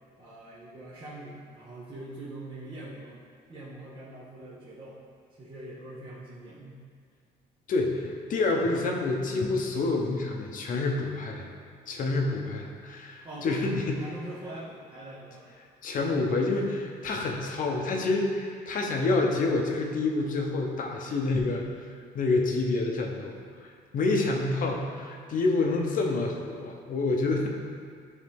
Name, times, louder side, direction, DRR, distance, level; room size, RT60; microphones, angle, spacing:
voice 1, 0.2-3.2 3.5-5.0 5.3-6.8 13.2-15.4, right 1 dB, 30° right, -9 dB, 1.1 m, -42 dB
voice 2, 7.7-11.5 11.9-14.0 15.8-21.6 22.1-23.4 23.9-27.5, left 3 dB, 55° left, 1 dB, 0.8 m, -28 dB
9.5 x 3.2 x 3.5 m, 2.1 s
cardioid pair, 110°, 17 cm